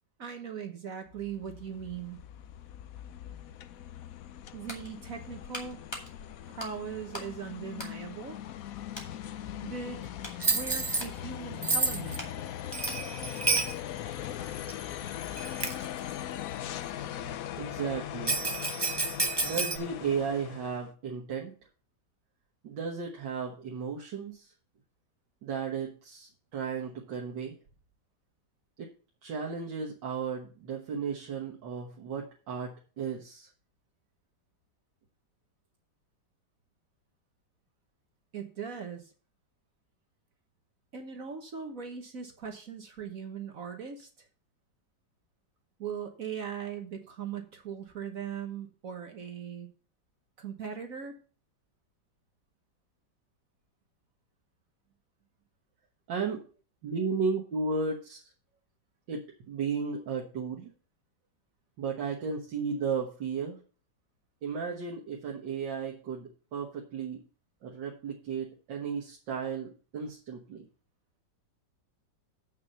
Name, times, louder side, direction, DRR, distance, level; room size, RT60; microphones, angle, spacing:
voice 1, 0.2-2.2 4.5-5.8 6.5-8.4 9.6-10.1 10.5-12.3 38.3-39.1 40.9-44.3 45.8-49.7 50.4-51.1, right 7 dB, 55° right, 5 dB, 1.4 m, -39 dB
sound 1, 1.1-20.9, left 11 dB, 65° left, 0.9 m, -40 dB
sound 2, 4.7-7.4 7.7-8.6 8.9-9.2 9.7-14.0 14.3-14.4, left 1 dB, 15° left, 2.1 m, -45 dB
Bell, 10.4-11.1 11.6-12.2 12.7-13.7 14.7-14.8 15.4-15.9 18.3-19.8, right 3 dB, 35° right, 0.4 m, -29 dB
voice 2, 17.6-18.4 19.4-21.5 22.6-24.5 25.4-27.6 28.8-28.9 29.2-33.5 56.1-56.4 56.8-58.2 59.1-60.7 61.8-63.6 64.4-67.2 67.6-70.7, right 5 dB, 85° right, -1 dB, 2.0 m, -34 dB
7.7 x 6.0 x 6.8 m, 0.39 s
omnidirectional pair, 1.9 m